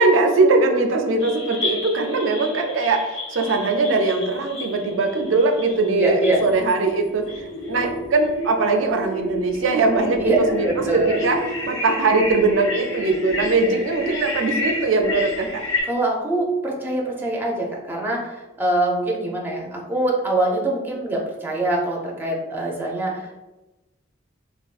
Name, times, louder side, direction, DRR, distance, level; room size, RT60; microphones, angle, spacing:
voice 1, 0.0-10.7 10.9-15.6, right 3 dB, 75° right, 4 dB, 0.4 m, -21 dB
sound 1, 1.2-15.8, left 1 dB, 70° left, 0.9 m, -30 dB
voice 2, 6.0-6.4 10.2-10.4 10.6-11.2 15.9-23.3, right 2 dB, 10° right, -2 dB, 0.5 m, -24 dB
3.4 x 2.3 x 2.4 m, 1.1 s
head